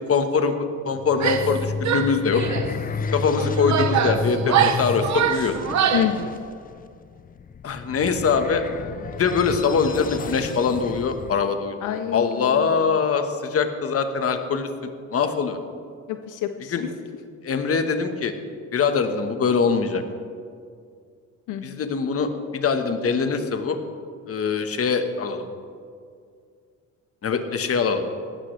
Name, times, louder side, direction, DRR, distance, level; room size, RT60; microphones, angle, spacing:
voice 1, 0.1-2.4 3.1-5.5 7.6-8.6 9.2-14.7 15.1-15.6 16.7-16.8 17.4-18.3 18.7-20.0 21.6-23.8 24.3-25.5 27.2-28.0, left 5 dB, 50° left, 7 dB, 1.3 m, -23 dB
sound 1, 1.0-11.5, left 5 dB, 30° left, 0.4 m, -31 dB
Female speech woman speaking / Yell, 1.1-1.6 1.9-2.7 3.4-6.2, right 8 dB, 65° right, 1.1 m, -23 dB
voice 2, 5.9-6.4 11.8-12.6 16.1-16.7 21.5-21.8, left 10 dB, 85° left, 8 dB, 0.6 m, -28 dB
18.0 x 13.0 x 3.3 m, 2.3 s
cardioid pair, 90°, 30 cm